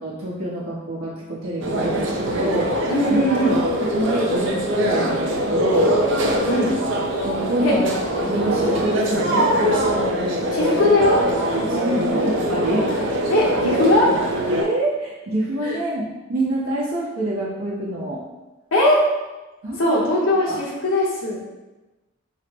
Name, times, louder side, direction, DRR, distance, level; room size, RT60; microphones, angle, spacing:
voice 1, 0.0-2.7 3.8-6.0 7.1-7.9 8.1-9.5 11.7-12.8 14.5-16.0 16.3-18.2 19.6-19.8 20.5-20.6, right 1 dB, 90° right, -5 dB, 1.1 m, -26 dB
sound 1, 1.6-14.6, equal, 60° right, 0.6 m, -22 dB
voice 2, 2.9-3.6 6.5-6.7 7.6-7.7 10.5-11.2 13.3-14.3 15.6-15.8 18.7-19.0 19.8-21.5, left 1 dB, 85° left, -3 dB, 1.1 m, -20 dB
4.1 x 2.1 x 4.5 m, 1.1 s
head